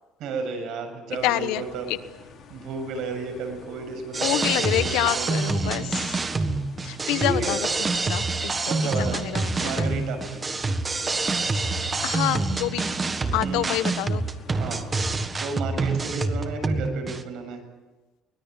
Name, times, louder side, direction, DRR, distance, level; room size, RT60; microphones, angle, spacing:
voice 1, 0.2-1.9 2.5-5.9 6.3-6.5 7.1-7.6 8.7-9.2 9.6-10.2 13.4-13.9 14.6-17.6, right 4 dB, 65° right, 5 dB, 7.1 m, -33 dB
sound 1, 1.1-15.2, left 3 dB, 40° left, 5.7 m, -46 dB
voice 2, 1.2-2.0 4.2-6.2 6.8-9.9 12.0-13.0 13.3-14.2, left 15 dB, 90° left, 13 dB, 1.1 m, -28 dB
sound 2, 4.1-17.2, right 3 dB, 20° right, 1.6 m, -27 dB
24.0 x 20.5 x 9.0 m, 1.2 s
cardioid pair, 135°, 0 cm